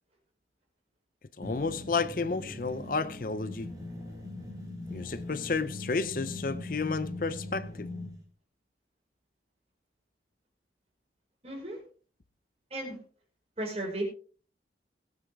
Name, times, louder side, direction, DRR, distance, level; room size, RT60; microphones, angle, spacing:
voice 1, 1.4-3.7 4.9-7.9, left 4 dB, 50° left, 0.6 m, -31 dB
sound 1, 1.4-8.2, left 2 dB, 20° right, 4.5 m, -41 dB
voice 2, 11.4-11.8 12.7-13.0 13.6-14.0, right 1 dB, 35° right, 5.2 m, -34 dB
19.5 x 9.3 x 3.5 m
head